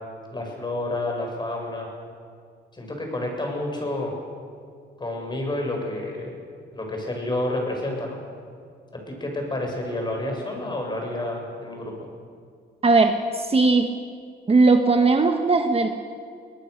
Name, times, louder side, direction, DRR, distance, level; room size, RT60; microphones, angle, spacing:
voice 1, 0.3-1.9 2.7-4.1 5.0-6.3 6.7-8.2 9.2-12.1, left 1 dB, 20° left, 1 dB, 7.1 m, -29 dB
voice 2, 12.8-13.9 14.5-16.0, right 3 dB, 30° right, 5 dB, 1.4 m, -18 dB
23.0 x 19.5 x 6.8 m, 2.2 s
cardioid pair, 90°, 20 cm